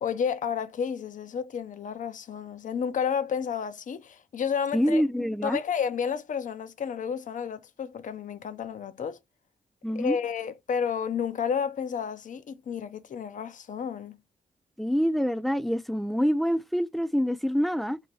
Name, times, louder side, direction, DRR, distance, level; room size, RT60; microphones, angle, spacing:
voice 1, 0.0-5.0 5.4-9.2 9.9-14.2, left 7 dB, 60° left, 0.6 m, -31 dB
voice 2, 4.7-5.6 9.8-10.2 14.8-18.0, equal, ahead, 0.4 m, -26 dB
2.7 x 2.6 x 3.0 m
cardioid pair, 60°, 15 cm